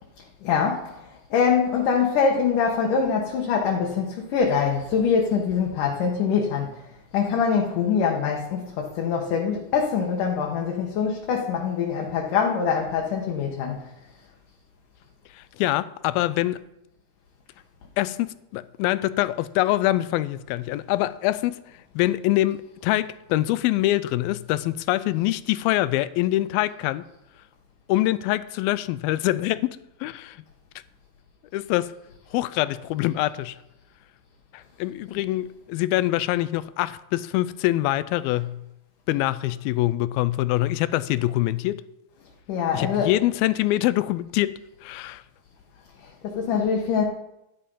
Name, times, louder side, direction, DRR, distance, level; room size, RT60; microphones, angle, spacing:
voice 1, 0.4-6.7 7.1-13.9 42.5-43.1 46.2-47.0, left 6 dB, 65° left, 2.6 m, -24 dB
voice 2, 15.4-16.6 18.0-21.6 22.0-27.0 27.9-30.4 31.5-31.9 32.3-33.6 34.5-38.6 39.1-41.8 42.7-45.2, left 16 dB, 85° left, 2.4 m, -24 dB
12.5 x 10.5 x 5.4 m
omnidirectional pair, 4.2 m